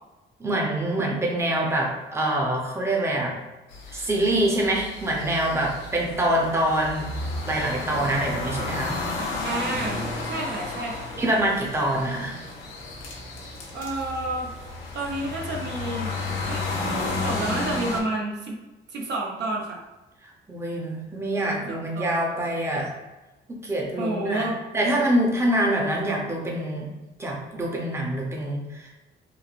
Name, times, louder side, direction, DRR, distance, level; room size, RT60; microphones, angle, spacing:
voice 1, 0.4-3.4 3.9-7.1 7.4-8.9 11.2-12.4 20.5-22.9 23.5-24.5 24.7-26.9 27.2-28.9, right 1 dB, 15° right, -2 dB, 0.6 m, -25 dB
sound 1, 3.7-18.0, left 2 dB, 85° left, 0.6 m, -32 dB
voice 2, 9.4-11.1 13.7-14.5 14.9-16.1 16.5-16.6 17.0-18.6 18.9-19.8 21.7-22.2 24.0-24.6, right 2 dB, 60° right, -1 dB, 0.6 m, -30 dB
3.2 x 2.0 x 2.4 m, 1.1 s
cardioid pair, 90°, 20 cm